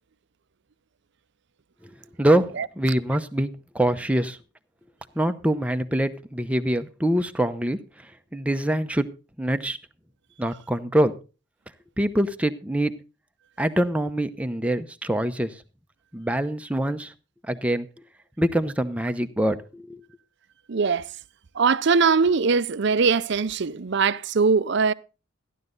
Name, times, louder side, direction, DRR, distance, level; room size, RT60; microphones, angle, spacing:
voice 1, 2.8-3.5 3.7-4.4 5.2-7.8 8.3-9.1 9.4-9.8 10.4-11.1 12.0-12.9 13.6-15.6 16.1-17.1 17.5-17.9 18.4-20.0, right 1 dB, 5° right, 0.8 m, -24 dB
voice 2, 20.7-21.1 21.6-24.9, right 5 dB, 60° right, 0.6 m, -21 dB
14.5 x 11.0 x 3.9 m
head